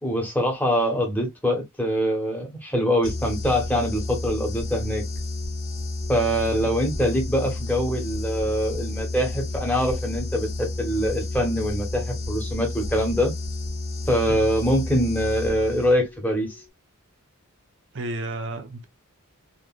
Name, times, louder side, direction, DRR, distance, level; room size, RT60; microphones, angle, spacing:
voice 1, 0.0-5.0 6.1-13.3 14.1-16.6, equal, 10° left, 1.3 m, -24 dB
sound 1, 3.0-16.2, left 2 dB, 40° left, 1.3 m, -31 dB
voice 2, 17.9-18.8, right 2 dB, 60° right, 0.8 m, -32 dB
4.0 x 3.2 x 2.4 m
head